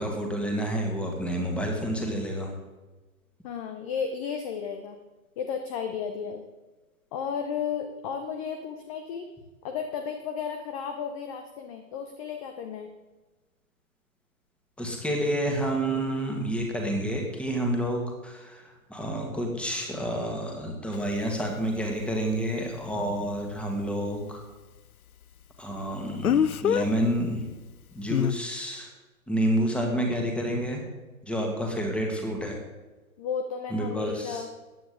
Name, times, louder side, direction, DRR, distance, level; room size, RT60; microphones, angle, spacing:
voice 1, 0.0-2.5 14.8-24.4 25.6-27.5 27.9-28.9 29.3-30.8 31.2-32.6 33.7-34.4, right 1 dB, 5° left, 1 dB, 1.8 m, -29 dB
voice 2, 3.4-5.0 5.4-6.4 7.1-9.3 9.6-12.9 33.2-34.5, left 7 dB, 25° left, 6 dB, 0.8 m, -33 dB
Speech, 20.9-21.0 26.2-26.9 28.1-28.4, left 9 dB, 80° left, 0.6 m, -23 dB
15.0 x 9.7 x 3.7 m, 1.2 s
figure-of-eight pair, 120°, 43 cm